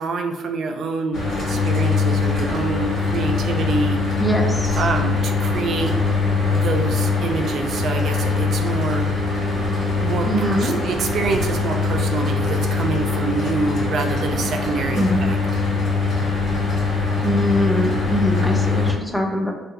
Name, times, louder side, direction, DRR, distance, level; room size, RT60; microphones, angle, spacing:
voice 1, 0.0-4.1 4.7-6.0 6.5-9.1 10.0-15.4, right 4 dB, 65° right, 4 dB, 0.4 m, -26 dB
Mechanical fan, 1.1-18.9, left 4 dB, 55° left, 1.5 m, -22 dB
voice 2, 4.2-4.7 10.3-10.8 15.0-15.3 17.2-19.5, equal, 10° left, 3 dB, 0.6 m, -22 dB
2.6 x 2.5 x 3.7 m, 1.2 s
cardioid pair, 75°, 0 cm